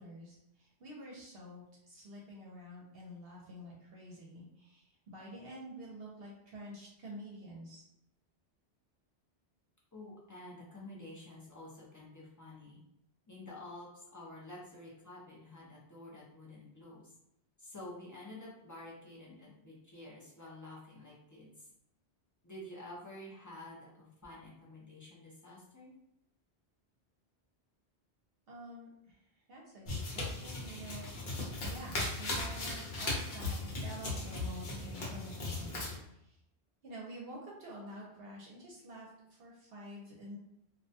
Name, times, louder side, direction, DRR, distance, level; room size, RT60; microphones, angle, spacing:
voice 1, 0.0-7.8 28.5-29.2 29.5-31.1 31.6-35.8 36.0-36.4 36.8-40.4, right 1 dB, 65° right, -4 dB, 0.8 m, -48 dB
voice 2, 9.9-12.8 13.3-17.1 17.6-21.7 22.4-25.9, left 1 dB, 25° left, -6 dB, 0.4 m, -50 dB
sound 1, 29.9-36.0, left 2 dB, 55° left, 0.8 m, -38 dB
2.3 x 2.2 x 2.6 m, 0.80 s
omnidirectional pair, 1.1 m